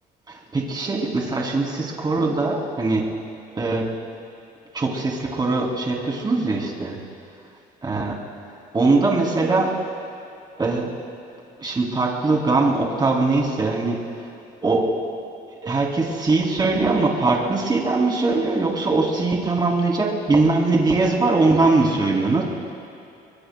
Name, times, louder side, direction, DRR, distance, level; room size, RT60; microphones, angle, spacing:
voice 1, 0.3-3.0 3.5-3.8 4.7-7.0 7.9-8.1 8.7-9.7 10.6-10.9 11.6-14.0 14.6-14.8 15.6-22.4, right 3 dB, 25° right, -1 dB, 3.1 m, -21 dB
26.5 x 23.5 x 2.3 m, 2.6 s
cardioid pair, 110°, 17 cm